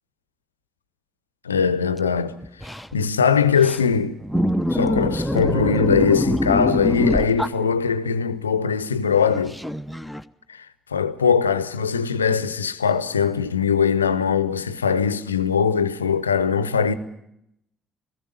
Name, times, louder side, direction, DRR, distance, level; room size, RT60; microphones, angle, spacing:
voice 1, 1.4-2.4 2.9-4.2 4.7-9.6 10.5-10.7 10.9-16.9, left 6 dB, 80° left, 0.7 m, -21 dB
sound 1, 2.2-2.3 2.4-2.9 3.5-3.9 4.2-8.1 9.1-10.2, left 1 dB, ahead, 0.9 m, -24 dB
18.5 x 16.0 x 10.0 m
figure-of-eight pair, 45°, 0 cm